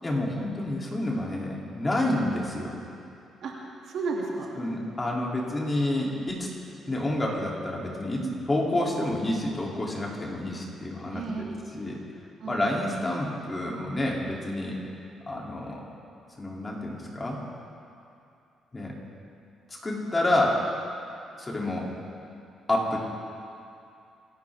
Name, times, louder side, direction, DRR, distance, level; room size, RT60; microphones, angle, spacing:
voice 1, 0.0-2.8 4.6-6.5 6.9-11.2 11.7-12.0 12.4-14.8 15.3-15.8 16.4-17.4 18.7-18.9 19.8-20.6 21.4-21.9 22.7-23.0, left 1 dB, 25° left, -3 dB, 3.1 m, -28 dB
voice 2, 3.4-4.5 8.2-8.4 11.1-11.6 12.4-12.6, right 4 dB, 70° right, -2 dB, 2.5 m, -33 dB
25.0 x 11.5 x 3.6 m, 2.6 s
cardioid pair, 90°, 0 cm